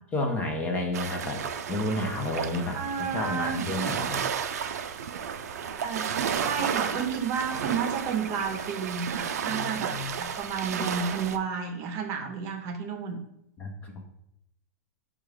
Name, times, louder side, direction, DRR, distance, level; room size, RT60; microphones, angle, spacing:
voice 1, 0.1-1.4 1.7-4.2 9.5-10.1 13.6-14.1, left 2 dB, 20° left, 2 dB, 0.6 m, -31 dB
sound 1, 0.9-11.4, right 7 dB, 80° right, 0.4 m, -33 dB
voice 2, 2.7-3.6 5.8-13.2, right 6 dB, 35° right, 4 dB, 0.7 m, -31 dB
4.5 x 2.4 x 4.9 m, 0.80 s
hypercardioid pair, 140°, 8 cm